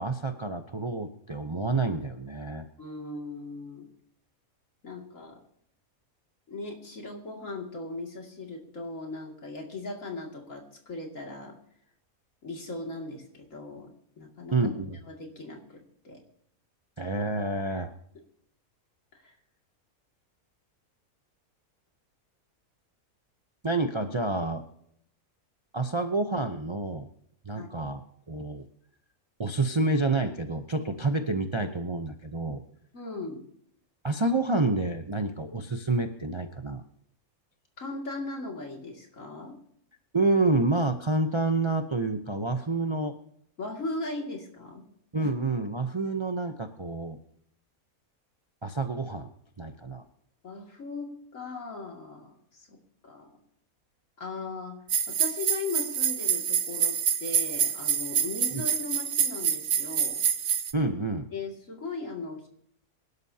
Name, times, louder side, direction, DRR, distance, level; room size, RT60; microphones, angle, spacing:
voice 1, 0.0-2.6 14.5-15.0 17.0-17.9 23.6-24.6 25.7-27.1 27.5-28.0 28.3-28.7 29.4-32.6 34.0-36.8 40.1-43.1 45.1-47.2 48.6-49.3 49.6-50.0 58.5-58.6 60.7-61.2, right 2 dB, 25° right, 6 dB, 0.6 m, -28 dB
voice 2, 2.8-3.9 4.8-5.4 6.5-11.6 12.4-13.9 14.2-14.7 15.1-16.2 17.7-17.8 19.1-19.4 27.5-27.7 32.9-33.4 37.8-39.6 43.6-44.8 45.2-45.3 50.4-53.4 54.2-54.8 55.1-60.2 61.3-62.5, left 3 dB, 60° left, 1 dB, 2.9 m, -38 dB
sound 1, 54.9-60.7, right 8 dB, 60° right, 1.1 m, -27 dB
24.0 x 12.0 x 2.8 m, 0.69 s
omnidirectional pair, 1.5 m